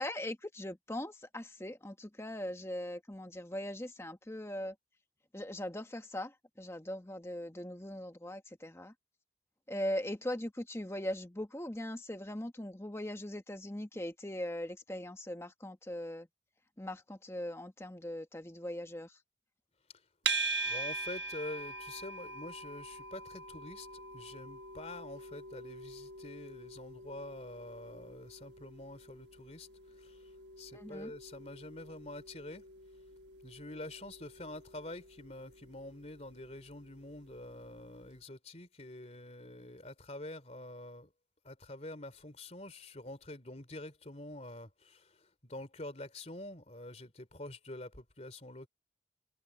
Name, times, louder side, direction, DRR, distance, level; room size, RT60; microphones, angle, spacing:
voice 1, 0.0-4.8 5.3-8.9 9.7-16.3 16.8-19.2 30.7-31.1, left 1 dB, 15° left, 1.1 m, -40 dB
sound 1, 20.3-37.5, right 4 dB, 70° right, 1.3 m, -43 dB
voice 2, 20.6-30.3 30.6-32.6 33.4-41.1 41.4-48.7, left 1 dB, 35° left, 3.4 m, -46 dB
head